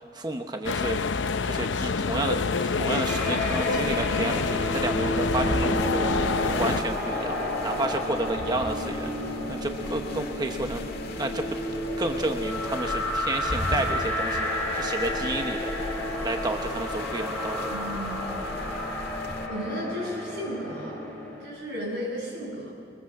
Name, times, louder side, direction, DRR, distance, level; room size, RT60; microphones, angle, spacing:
voice 1, 0.1-1.0 1.4-6.0 6.6-7.4 7.6-9.1 9.5-10.8 11.2-11.5 12.0-14.5 14.7-15.7 16.2-17.9, right 2 dB, 25° right, 5 dB, 0.9 m, -31 dB
sound 1, 0.6-6.8, left 4 dB, 80° left, 0.7 m, -27 dB
sound 2, 3.0-21.5, left 1 dB, 5° left, 5.1 m, -31 dB
sound 3, 3.2-19.5, left 1 dB, 55° left, 1.8 m, -37 dB
voice 2, 17.7-18.4 19.5-21.0 21.4-22.7, equal, 65° right, -2 dB, 7.9 m, -34 dB
22.5 x 21.0 x 7.6 m, 2.4 s
head